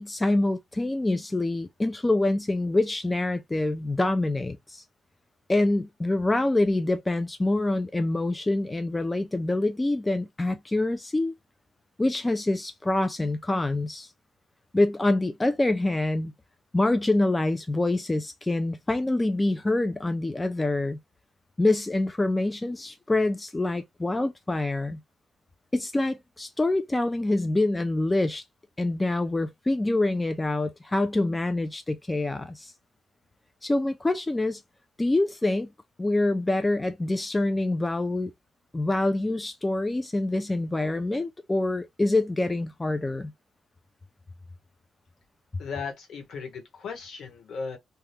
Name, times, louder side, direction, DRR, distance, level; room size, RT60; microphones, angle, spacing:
voice 1, 0.0-4.8 5.5-11.3 12.0-14.1 14.7-16.3 16.7-21.0 21.6-25.0 25.7-28.4 28.8-32.7 33.6-34.6 35.0-35.7 36.0-38.3 38.7-43.3, left 2 dB, 15° left, 0.4 m, -26 dB
voice 2, 45.6-47.8, left 5 dB, 65° left, 1.2 m, -36 dB
2.8 x 2.3 x 3.3 m
cardioid pair, 90°, 0 cm